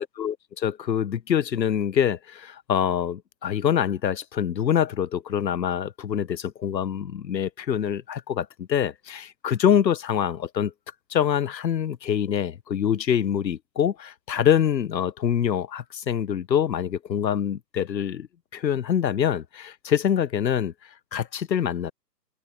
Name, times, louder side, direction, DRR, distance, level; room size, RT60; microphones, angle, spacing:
voice 1, 0.0-10.7 11.1-18.3 18.5-20.7 21.1-21.9, left 9 dB, 90° left, 1.0 m, -25 dB
open air
hypercardioid pair, 170°, 50 cm